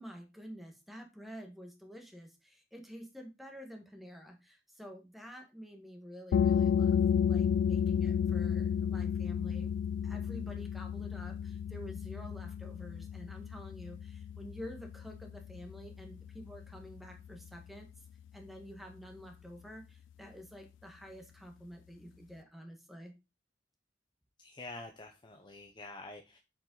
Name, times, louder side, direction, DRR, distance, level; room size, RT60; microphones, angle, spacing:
voice 1, 0.0-9.7 10.0-17.9 18.3-23.1, equal, ahead, 3 dB, 1.5 m, -49 dB
sound 1, 6.3-17.7, left 8 dB, 90° left, 0.3 m, -32 dB
voice 2, 24.4-26.4, left 2 dB, 25° left, 3 dB, 0.8 m, -47 dB
7.6 x 5.2 x 3.9 m, 0.27 s
head